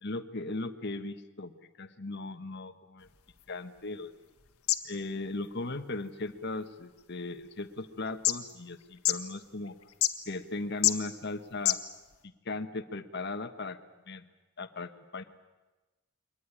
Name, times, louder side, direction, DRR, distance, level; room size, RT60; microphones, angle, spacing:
voice 1, 0.0-1.5 1.8-3.1 3.5-4.1 4.8-9.8 10.3-11.8 12.2-13.8 14.1-14.3 14.6-15.2, left 2 dB, 50° left, 9 dB, 1.3 m, -37 dB
sound 1, 3.0-12.2, left 13 dB, 85° left, 1.5 m, -35 dB
23.0 x 19.0 x 9.8 m, 1.2 s
head